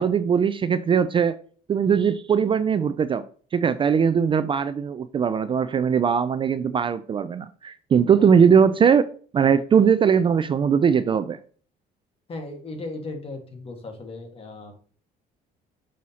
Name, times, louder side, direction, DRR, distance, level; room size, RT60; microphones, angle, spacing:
voice 1, 0.0-1.4 1.7-3.2 3.5-9.1 9.3-11.4, right 7 dB, 30° right, 13 dB, 0.3 m, -20 dB
voice 2, 12.3-14.7, left 2 dB, 35° left, 4 dB, 1.5 m, -36 dB
6.3 x 5.4 x 2.8 m, 0.44 s
cardioid pair, 110°, 17 cm